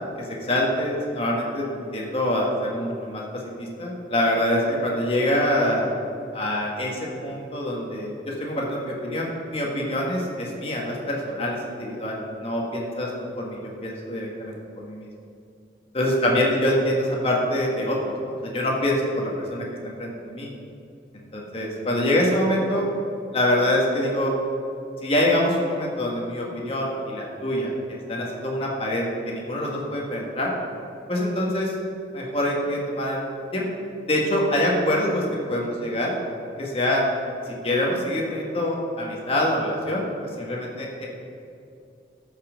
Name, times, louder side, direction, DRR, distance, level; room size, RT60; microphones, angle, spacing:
voice 1, 0.4-5.9 6.3-13.1 13.3-15.1 15.9-18.0 18.2-19.7 20.0-20.5 21.1-22.9 23.3-24.3 25.0-30.5 31.1-31.7 32.1-33.2 33.5-33.6 34.1-36.1 36.6-37.1 37.6-40.0 40.4-41.1, left 1 dB, 35° left, -2 dB, 1.6 m, -25 dB
13.0 x 5.7 x 5.1 m, 2.5 s
head